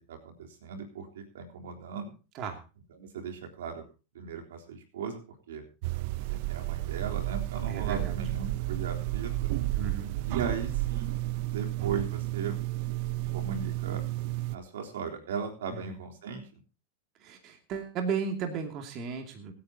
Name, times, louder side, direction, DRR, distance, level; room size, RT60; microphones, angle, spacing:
voice 1, 0.1-2.1 3.0-3.9 4.1-5.2 5.5-5.6 6.3-9.5 10.3-11.2 11.5-12.6 13.3-14.0 14.5-16.4, right 6 dB, 85° right, 3 dB, 3.6 m, -37 dB
sound 1, 5.8-14.6, right 17 dB, 55° right, 0.7 m, -32 dB
voice 2, 7.7-8.2 9.8-10.1 15.7-15.8 17.2-19.5, right 6 dB, 40° right, 4 dB, 2.6 m, -34 dB
25.5 x 9.6 x 2.9 m, 0.34 s
hypercardioid pair, 130°, 0 cm